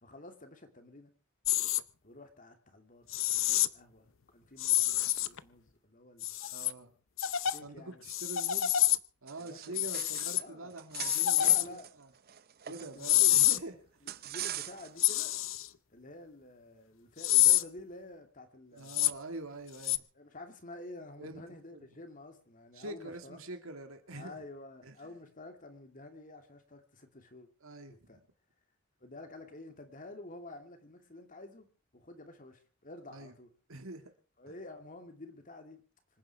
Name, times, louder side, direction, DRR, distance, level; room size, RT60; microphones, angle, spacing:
voice 1, 0.0-1.1 2.0-6.4 7.4-8.0 9.4-10.7 11.4-11.9 12.7-13.6 14.2-15.3 15.9-19.0 20.1-23.4 24.1-27.5 27.9-28.2 29.0-31.7 31.9-33.5 34.4-35.8, left 2 dB, 40° left, 2.7 m, -50 dB
sound 1, 1.5-1.8 3.1-3.7 4.6-5.4 6.2-6.7 7.2-7.6 8.1-9.0 9.8-10.4 11.0-11.6 13.0-13.6 15.0-15.7 17.2-17.6 18.9-19.1 19.8-20.0, left 14 dB, 60° left, 0.8 m, -27 dB
voice 2, 6.5-6.9 7.6-8.8 9.2-12.1 12.7-13.7 18.7-20.1 21.2-21.4 21.7-21.9 22.7-24.4 24.8-25.1 27.6-28.2 33.1-33.3 33.7-34.1, right 2 dB, 70° right, 2.2 m, -45 dB
sound 2, 9.3-10.4 10.7-13.5 14.1-15.0, right 11 dB, 45° right, 0.7 m, -42 dB
26.0 x 10.0 x 4.8 m
head